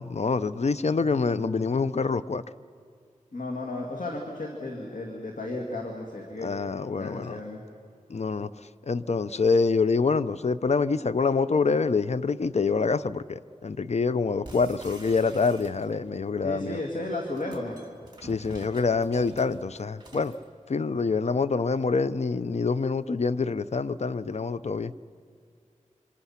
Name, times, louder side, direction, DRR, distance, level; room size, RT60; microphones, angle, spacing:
voice 1, 0.0-2.4 6.4-7.4 8.1-8.5 8.9-16.8 18.2-20.3 20.7-24.9, left 4 dB, 55° left, 15 dB, 0.6 m, -26 dB
voice 2, 3.3-6.5 7.0-7.6 16.4-17.8, left 2 dB, 80° left, 0 dB, 2.3 m, -34 dB
sound 1, 14.4-16.2 17.1-20.4, right 2 dB, 35° right, 3.3 m, -48 dB
27.5 x 25.0 x 5.8 m, 2.2 s
wide cardioid pair, 55°, 13 cm